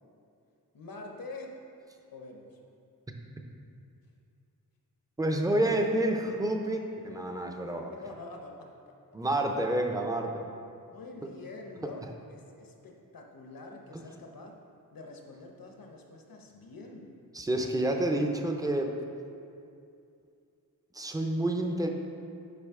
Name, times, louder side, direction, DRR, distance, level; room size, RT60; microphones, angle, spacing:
voice 1, 0.7-1.7 2.1-2.6 7.9-8.9 10.9-14.5 14.9-17.2, left 2 dB, 70° left, 2 dB, 0.9 m, -46 dB
voice 2, 5.2-7.9 9.1-10.4 17.3-18.9 20.9-21.9, right 1 dB, 10° right, 3 dB, 0.5 m, -29 dB
8.4 x 5.0 x 3.6 m, 2.5 s
wide cardioid pair, 130°, 36 cm